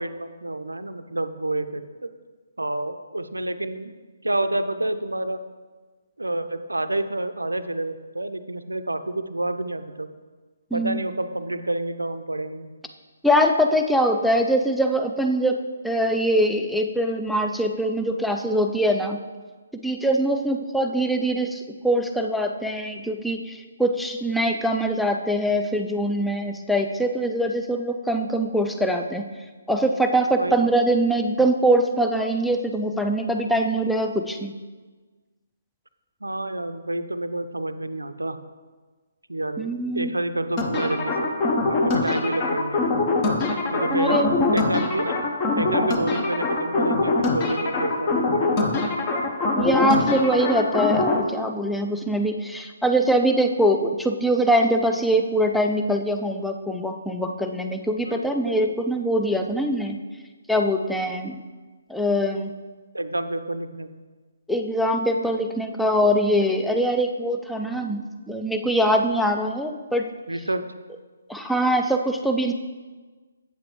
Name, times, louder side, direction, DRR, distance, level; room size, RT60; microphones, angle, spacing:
voice 1, 0.0-2.1 2.6-3.9 4.2-5.4 6.2-10.1 10.7-12.7 30.4-30.7 36.2-38.4 39.3-41.3 41.7-43.0 43.7-44.3 44.5-45.2 45.6-48.9 58.1-58.6 62.9-64.0 70.3-70.6, right 2 dB, 75° right, 10 dB, 0.5 m, -29 dB
voice 2, 10.7-11.0 13.2-15.6 15.8-19.2 19.8-29.3 29.7-34.5 39.6-40.1 43.9-44.5 49.5-60.0 60.5-61.4 61.9-62.5 64.5-70.1 71.3-72.5, equal, ahead, 3 dB, 0.4 m, -23 dB
sound 1, 40.6-51.2, left 3 dB, 25° left, 0.7 m, -23 dB
8.1 x 7.4 x 3.2 m, 1.4 s
figure-of-eight pair, 135°, 0 cm